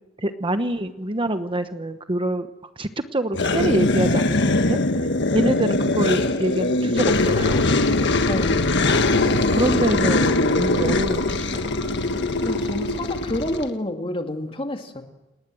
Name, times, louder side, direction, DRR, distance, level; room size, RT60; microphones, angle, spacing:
voice 1, 0.2-2.5 2.8-4.8 5.3-7.6 9.3-11.7, right 1 dB, 25° right, 9 dB, 1.0 m, -25 dB
sound 1, 3.3-13.7, left 2 dB, 60° left, 1.6 m, -21 dB
voice 2, 8.3-8.7 9.6-10.0 12.4-15.0, left 1 dB, 30° left, 4 dB, 2.4 m, -29 dB
29.5 x 19.5 x 7.8 m, 1.1 s
head